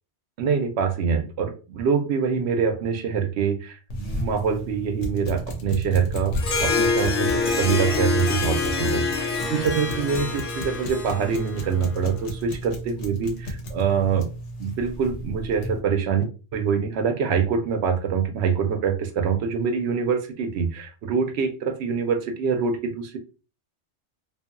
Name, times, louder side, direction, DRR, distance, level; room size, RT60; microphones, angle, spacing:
voice 1, 0.4-6.4 6.6-14.3 14.6-23.2, right 6 dB, 70° right, 7 dB, 0.8 m, -25 dB
sound 1, 3.9-15.8, equal, 80° left, 1.0 m, -33 dB
Harp, 6.3-12.1, left 4 dB, 55° left, 0.7 m, -26 dB
2.7 x 2.5 x 2.4 m, 0.34 s
omnidirectional pair, 1.2 m